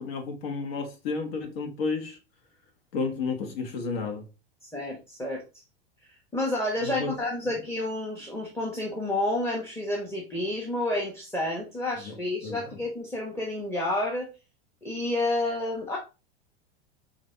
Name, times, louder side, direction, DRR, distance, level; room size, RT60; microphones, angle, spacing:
voice 1, 0.0-2.2 2.9-4.2 6.8-7.1 12.0-12.1 12.4-12.6, left 4 dB, 65° left, 1.3 m, -31 dB
voice 2, 4.6-5.6 6.0-14.3 14.8-16.0, left 1 dB, 10° left, 1.0 m, -30 dB
5.0 x 2.6 x 3.3 m
hypercardioid pair, 100°, 31 cm